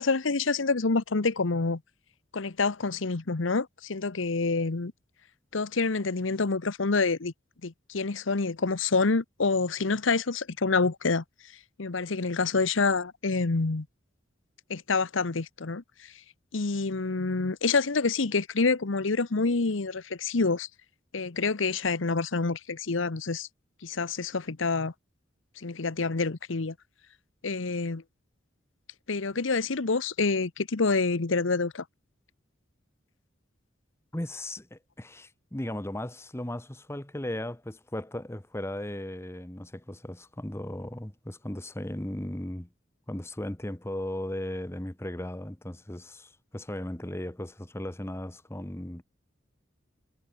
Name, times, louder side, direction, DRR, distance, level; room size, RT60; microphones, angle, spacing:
voice 1, 0.0-1.8 2.3-4.9 5.5-7.3 7.6-11.2 11.8-13.9 14.7-15.8 16.5-20.7 21.1-23.5 23.8-24.9 25.6-26.7 27.4-28.0 29.1-31.8, left 4 dB, 80° left, 1.0 m, -27 dB
voice 2, 34.1-42.7 43.1-49.0, left 1 dB, 15° left, 1.1 m, -36 dB
head